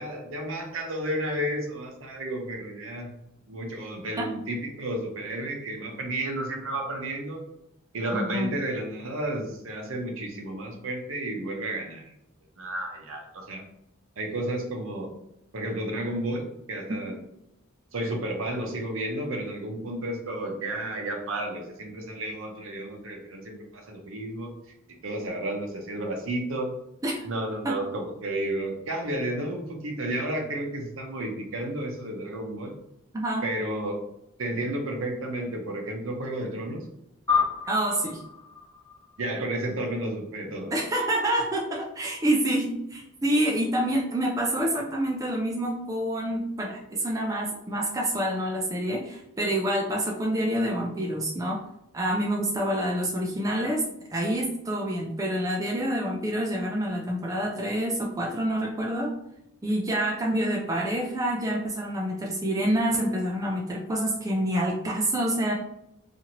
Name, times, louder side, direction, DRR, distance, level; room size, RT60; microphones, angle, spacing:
voice 1, 0.0-3.1 3.5-7.4 7.9-12.1 12.6-13.6 14.2-15.1 15.5-17.2 17.9-24.5 25.0-26.7 27.2-32.7 33.4-34.0 34.4-36.8 39.2-40.7, right 1 dB, 65° right, 2 dB, 0.7 m, -32 dB
voice 2, 8.1-8.5 27.0-27.2 27.6-27.8 33.1-33.4 37.6-38.2 40.7-51.6 51.9-53.8 54.1-59.1 59.6-65.5, right 1 dB, 15° right, -1 dB, 0.3 m, -27 dB
sound 1, 37.3-40.0, left 6 dB, 15° left, 1.2 m, -30 dB
2.8 x 2.5 x 2.8 m, 0.81 s
head